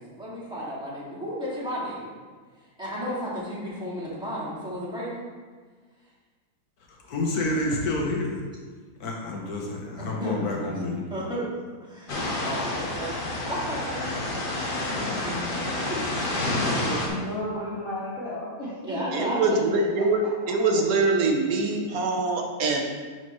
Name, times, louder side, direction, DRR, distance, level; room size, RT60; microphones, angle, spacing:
voice 1, 0.0-2.1 2.8-5.2 10.0-10.8 11.1-11.5 11.8-13.1 13.4-14.1 15.0-15.4 16.9-17.2 17.5-17.7 18.8-19.8, equal, 5° right, -9 dB, 2.1 m, -33 dB
voice 2, 7.1-8.4 9.0-11.0, left 2 dB, 85° left, 0 dB, 1.6 m, -28 dB
sound 1, 12.1-17.1, left 2 dB, 40° left, 1.1 m, -29 dB
voice 3, 16.8-19.6 20.0-20.1, left 1 dB, 60° left, -8 dB, 1.7 m, -34 dB
voice 4, 19.1-20.2 20.5-22.8, right 3 dB, 75° right, 2 dB, 1.4 m, -24 dB
10.5 x 4.3 x 3.1 m, 1.5 s
omnidirectional pair, 1.6 m